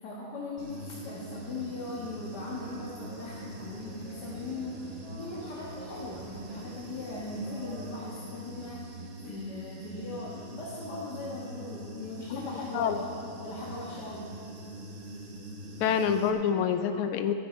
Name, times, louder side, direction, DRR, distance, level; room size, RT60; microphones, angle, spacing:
voice 1, 0.0-14.3, left 2 dB, 50° left, -5 dB, 2.0 m, -39 dB
Human voice / Buzz, 0.6-16.3, right 1 dB, 35° right, 1.2 m, -44 dB
sound 1, 2.5-7.9, right 2 dB, 65° right, 2.5 m, -50 dB
voice 2, 12.3-13.0 15.8-17.3, left 8 dB, 90° left, 9 dB, 1.7 m, -27 dB
20.0 x 9.9 x 4.5 m, 2.6 s
omnidirectional pair, 2.3 m